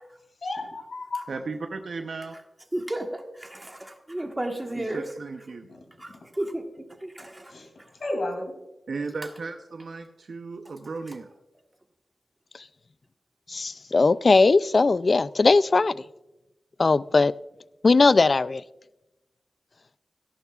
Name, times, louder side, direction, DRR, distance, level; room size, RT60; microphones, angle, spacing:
voice 1, 0.4-1.2 5.6-6.3 7.2-8.6, left 2 dB, 70° left, 3 dB, 2.7 m, -34 dB
voice 2, 1.3-2.3 4.8-5.7 8.9-11.3, right 4 dB, 70° right, 4 dB, 0.7 m, -35 dB
voice 3, 2.7-5.1 6.0-6.6 7.0-7.5, right 1 dB, 15° right, 4 dB, 1.4 m, -33 dB
voice 4, 13.5-16.0 16.8-17.3 17.8-18.6, left 3 dB, 45° left, 18 dB, 0.3 m, -19 dB
17.0 x 11.5 x 2.4 m, 0.99 s
wide cardioid pair, 95°, 0 cm